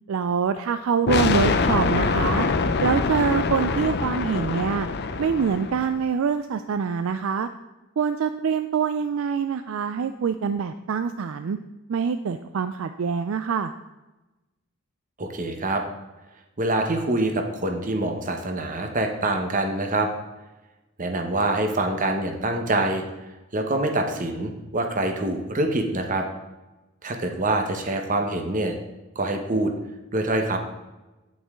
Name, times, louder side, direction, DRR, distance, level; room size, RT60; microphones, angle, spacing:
voice 1, 0.1-2.5 2.8-4.9 5.2-7.5 8.0-11.6 11.9-13.7, right 6 dB, 60° right, 10 dB, 0.3 m, -25 dB
sound 1, 1.1-5.9, left 4 dB, 50° left, 0.5 m, -24 dB
voice 2, 15.2-15.8 16.6-20.1 21.0-23.0 23.5-26.2 27.0-28.8 29.1-29.7 30.1-30.6, right 2 dB, 35° right, 4 dB, 1.1 m, -25 dB
8.7 x 8.0 x 3.7 m, 1.1 s
head